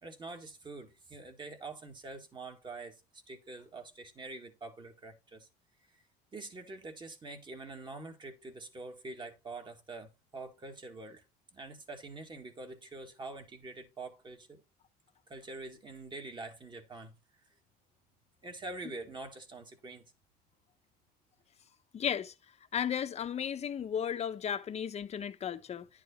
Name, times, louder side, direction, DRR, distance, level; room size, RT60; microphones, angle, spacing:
voice 1, 0.0-5.5 5.9-6.0 6.3-11.2 11.5-14.6 15.3-17.2 18.4-20.0, right 3 dB, 25° right, 1.9 m, -45 dB
voice 2, 21.9-22.3 22.7-25.9, left 8 dB, 35° left, 1.0 m, -34 dB
11.0 x 4.8 x 4.3 m
cardioid pair, 125°, 19 cm